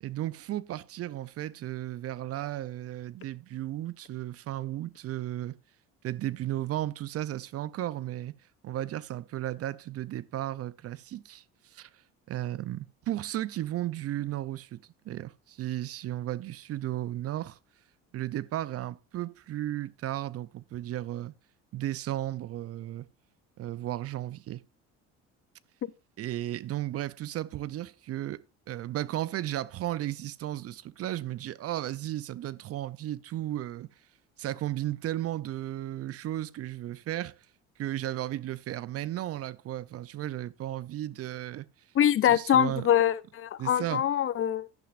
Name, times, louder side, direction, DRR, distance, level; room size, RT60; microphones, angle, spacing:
voice 1, 0.0-5.6 6.0-8.3 8.6-11.9 12.3-17.6 18.1-21.3 21.7-23.1 23.6-24.6 26.2-33.9 34.4-37.4 37.8-41.7 42.2-42.9 43.6-44.1, right 13 dB, 50° right, 0.6 m, -34 dB
voice 2, 41.9-44.7, left 10 dB, 45° left, 0.7 m, -24 dB
11.0 x 10.5 x 2.5 m
supercardioid pair, 85°, 31 cm